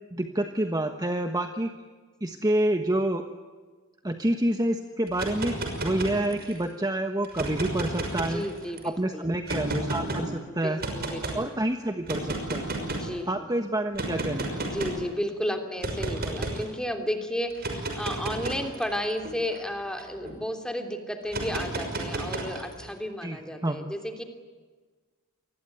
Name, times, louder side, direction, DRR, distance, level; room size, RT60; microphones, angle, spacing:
voice 1, 0.1-1.7 2.2-3.2 4.0-5.5 5.8-8.4 8.8-10.8 11.3-12.7 13.3-14.5 23.2-23.4 23.6-23.8, right 1 dB, 15° right, 6 dB, 1.3 m, -28 dB
sound 1, 5.1-6.6 7.2-8.8 9.5-10.2 10.8-11.4 12.0-13.1 14.0-15.0 15.8-16.6 17.5-20.3 21.3-22.8, right 2 dB, 45° right, 5.9 m, -32 dB
voice 2, 8.3-9.2 10.5-11.5 12.9-13.5 14.6-24.2, equal, 5° left, 5 dB, 3.2 m, -33 dB
27.5 x 21.0 x 9.2 m, 1.4 s
head